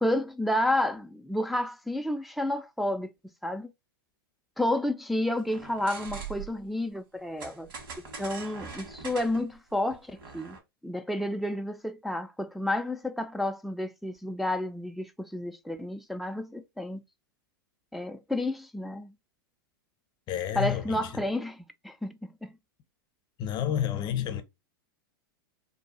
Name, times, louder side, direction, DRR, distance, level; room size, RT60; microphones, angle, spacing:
voice 1, 0.0-3.1 3.4-3.7 4.6-7.7 8.2-10.6 10.8-17.0 17.9-19.1 20.6-22.5, left 1 dB, ahead, 0.4 m, -30 dB
sound 1, 5.4-6.7 7.4-10.6, right 5 dB, 70° right, 1.4 m, -42 dB
voice 2, 20.3-21.2 23.4-24.4, left 10 dB, 35° left, 0.8 m, -30 dB
2.7 x 2.3 x 4.1 m
hypercardioid pair, 100°, 12 cm